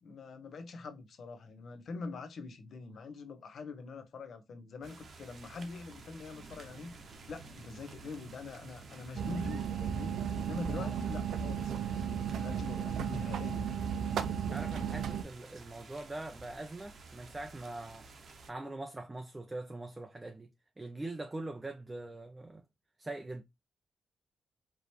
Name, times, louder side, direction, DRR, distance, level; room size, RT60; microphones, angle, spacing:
voice 1, 0.0-6.9 7.3-10.2 10.5-13.8, left 4 dB, 55° left, 0.8 m, -44 dB
sound 1, 4.8-18.5, right 3 dB, 45° right, 0.8 m, -52 dB
sound 2, 9.2-15.2, right 8 dB, 80° right, 0.5 m, -34 dB
voice 2, 14.4-18.1 18.5-22.6 23.0-23.4, right 2 dB, 15° right, 0.4 m, -43 dB
4.8 x 3.1 x 2.7 m
wide cardioid pair, 160°, 0 cm